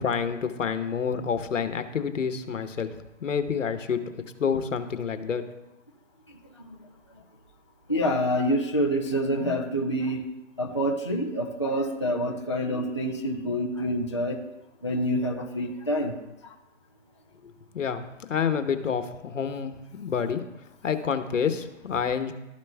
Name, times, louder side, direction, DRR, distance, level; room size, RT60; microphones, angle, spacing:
voice 1, 0.0-2.9 3.2-4.0 4.4-5.4 17.7-18.0 18.3-20.4 20.8-22.3, left 6 dB, 85° left, 9 dB, 1.0 m, -28 dB
voice 2, 6.3-6.8 7.9-10.3 10.6-14.4 14.8-16.1 16.4-16.5, equal, 25° left, -1 dB, 0.4 m, -27 dB
13.0 x 5.2 x 2.3 m, 0.95 s
hypercardioid pair, 165°, 37 cm